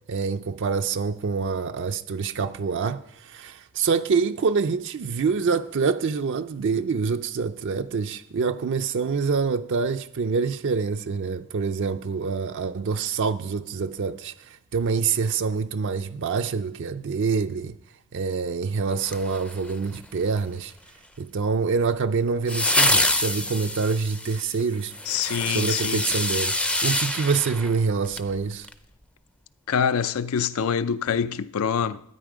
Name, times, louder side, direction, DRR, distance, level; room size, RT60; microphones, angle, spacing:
voice 1, 0.1-17.8 18.1-20.7 21.2-24.9 25.5-26.6 26.8-28.7, right 5 dB, 55° right, 0.4 m, -26 dB
sound 1, 19.0-20.0 22.5-28.3 28.6-28.7, left 1 dB, 5° left, 0.5 m, -26 dB
voice 2, 25.1-26.0 29.7-32.0, left 7 dB, 70° left, 0.4 m, -25 dB
12.5 x 9.5 x 5.0 m
head